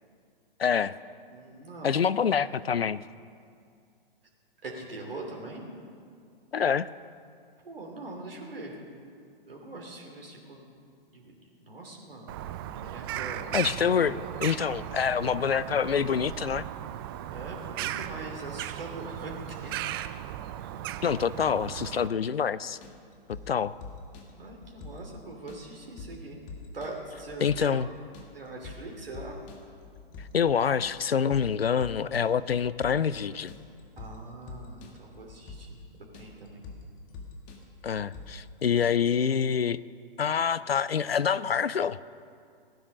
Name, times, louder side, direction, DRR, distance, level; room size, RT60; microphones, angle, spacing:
voice 1, 0.6-0.9 1.8-3.0 6.5-6.9 13.5-16.7 21.0-22.8 23.5-23.8 27.4-27.9 30.3-33.5 37.8-39.8 40.2-42.0, left 7 dB, 85° left, 17 dB, 0.5 m, -26 dB
voice 2, 1.3-2.1 4.6-5.7 7.6-8.7 9.4-10.6 11.1-11.2 11.6-12.3 12.7-13.5 17.3-19.7 24.4-26.4 26.7-27.9 28.3-29.4 34.0-35.8 36.2-36.6, right 2 dB, 70° right, 0 dB, 2.9 m, -42 dB
Bird vocalization bird call bird song, 12.3-22.1, right 12 dB, 25° right, 0.4 m, -37 dB
sound 1, 22.8-38.9, left 3 dB, 25° left, 2.0 m, -46 dB
17.0 x 10.5 x 6.2 m, 2.3 s
figure-of-eight pair, 120°, 29 cm